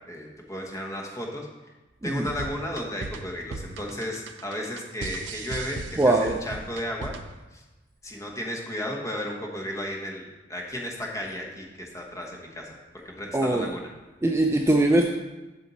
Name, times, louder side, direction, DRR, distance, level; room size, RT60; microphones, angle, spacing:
voice 1, 0.1-1.5 2.0-7.1 7.5-7.6 8.0-12.8 13.0-13.9, equal, 20° left, 0 dB, 1.2 m, -34 dB
sound 1, 2.3-7.4, right 3 dB, 80° right, 0.5 m, -38 dB
voice 2, 6.0-6.4 13.3-13.7 14.2-15.2, right 2 dB, 15° right, 2 dB, 0.4 m, -21 dB
8.1 x 6.2 x 4.1 m, 1.1 s
head